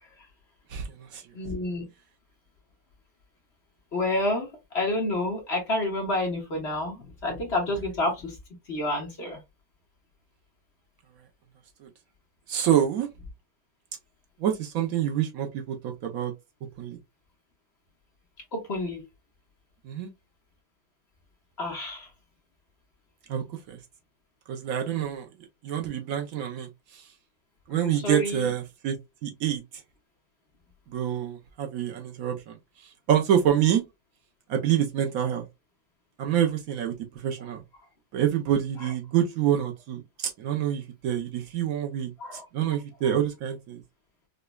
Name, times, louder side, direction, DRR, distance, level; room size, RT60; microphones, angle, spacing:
voice 1, 0.7-1.2 11.8-11.9 12.5-13.1 14.4-16.3 16.8-17.0 19.8-20.1 23.3-23.8 24.5-25.3 25.6-27.0 27.7-29.0 29.2-29.6 30.9-32.6 33.1-33.8 34.5-35.5 36.2-36.9 37.2-37.6 38.1-43.8, right 10 dB, 70° right, 0.8 m, -27 dB
voice 2, 1.3-1.9 3.9-4.5 4.7-8.4 8.7-9.4 18.5-19.0 21.6-22.1 27.9-28.5 42.2-42.4, left 1 dB, 45° left, 1.0 m, -29 dB
5.0 x 2.2 x 2.2 m
omnidirectional pair, 2.1 m